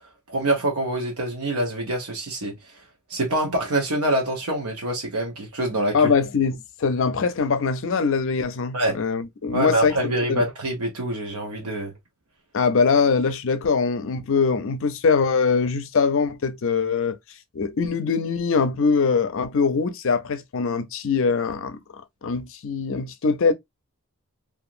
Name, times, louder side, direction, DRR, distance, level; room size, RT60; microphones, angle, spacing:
voice 1, 0.3-2.6 3.1-6.1 8.7-9.0 9.5-11.9, right 1 dB, 85° right, 0.8 m, -25 dB
voice 2, 5.9-10.4 12.5-17.2 17.5-21.8 22.2-23.5, left 5 dB, 60° left, 0.5 m, -22 dB
2.9 x 2.4 x 2.4 m
head